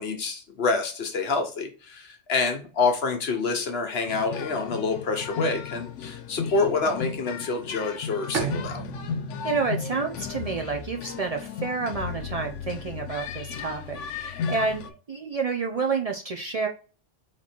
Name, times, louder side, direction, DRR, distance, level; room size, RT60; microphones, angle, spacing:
voice 1, 0.0-8.8, left 4 dB, 60° left, 5 dB, 1.1 m, -27 dB
sound 1, 4.1-14.9, left 6 dB, 85° left, 0.9 m, -35 dB
Bowed string instrument, 8.3-12.0, right 8 dB, 85° right, 0.9 m, -36 dB
voice 2, 9.4-16.7, right 4 dB, 50° right, 3 dB, 0.4 m, -29 dB
4.2 x 2.9 x 4.3 m, 0.37 s
omnidirectional pair, 1.2 m